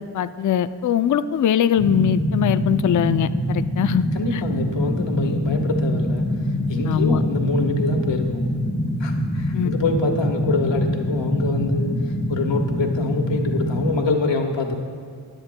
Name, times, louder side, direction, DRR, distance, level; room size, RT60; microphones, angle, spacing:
voice 1, 0.1-4.4 6.9-7.2 9.5-9.7, left 9 dB, 40° left, 11 dB, 0.4 m, -21 dB
sound 1, 1.8-14.0, equal, ahead, 1.3 m, -24 dB
voice 2, 4.1-6.2 6.7-8.4 9.0-14.8, left 3 dB, 60° left, 3 dB, 1.4 m, -25 dB
19.5 x 10.0 x 2.2 m, 2.1 s
cardioid pair, 50°, 50 cm